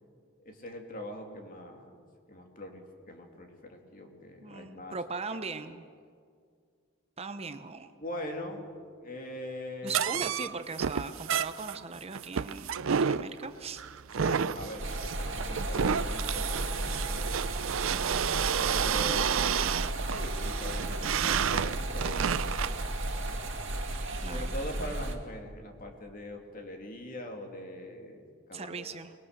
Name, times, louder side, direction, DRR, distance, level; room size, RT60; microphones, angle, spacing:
voice 1, 0.5-2.0 2.3-5.0 8.0-8.7 9.0-10.0 14.2-17.3 18.6-19.6 20.0-23.4 24.3-28.8, left 1 dB, 45° left, 3 dB, 2.6 m, -42 dB
voice 2, 4.4-5.8 7.2-7.9 9.8-13.8 17.8-18.7 24.2-25.0 28.5-29.1, right 4 dB, 30° right, 9 dB, 0.8 m, -40 dB
sound 1, 9.9-22.8, right 7 dB, 80° right, 0.5 m, -31 dB
sound 2, 14.8-25.2, right 1 dB, 65° right, 2.3 m, -34 dB
24.5 x 20.0 x 6.6 m, 2.1 s
head